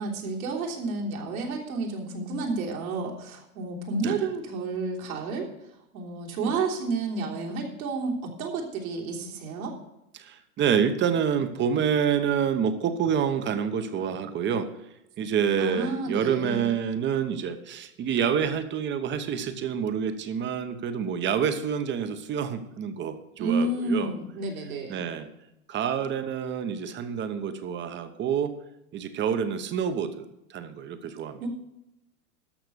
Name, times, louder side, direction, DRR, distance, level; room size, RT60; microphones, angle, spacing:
voice 1, 0.0-5.5 5.9-9.7 15.6-16.7 23.4-25.1 31.4-31.5, right 3 dB, 70° right, -1 dB, 3.2 m, -30 dB
voice 2, 10.1-14.7 15.2-24.1 24.9-25.3 25.7-28.5 28.9-30.2 30.5-31.4, right 7 dB, 25° right, 10 dB, 1.0 m, -27 dB
13.5 x 5.9 x 6.8 m, 0.87 s
hypercardioid pair, 115°, 44 cm